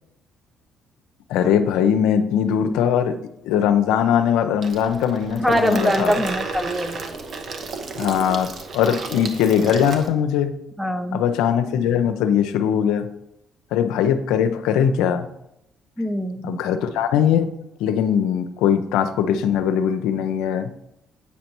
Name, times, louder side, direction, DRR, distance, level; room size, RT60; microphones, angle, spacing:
voice 1, 1.3-3.2 3.4-6.2 8.0-10.5 11.1-13.1 13.7-15.2 16.4-17.5 17.8-20.7, left 8 dB, 90° left, 9 dB, 0.5 m, -20 dB
Water tap faucet / Sink (filling or washing), 4.6-10.1, right 4 dB, 55° right, 0.8 m, -32 dB
voice 2, 5.4-7.1 10.8-11.2 16.0-16.6, equal, 10° right, 9 dB, 0.6 m, -23 dB
8.3 x 5.2 x 3.0 m, 0.82 s
supercardioid pair, 75°, 0 cm